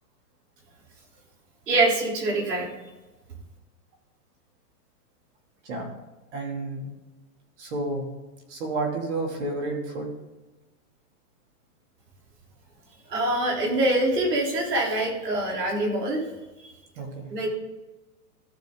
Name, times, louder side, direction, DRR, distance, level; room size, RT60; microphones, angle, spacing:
voice 1, 1.7-2.7 13.1-16.2 17.3-17.5, right 2 dB, 85° right, -1 dB, 3.7 m, -24 dB
voice 2, 6.3-6.9 7.6-8.1 8.5-10.1 17.0-17.3, right 2 dB, 45° right, 0 dB, 2.9 m, -30 dB
14.0 x 6.7 x 3.8 m, 1.1 s
hypercardioid pair, 160°, 47 cm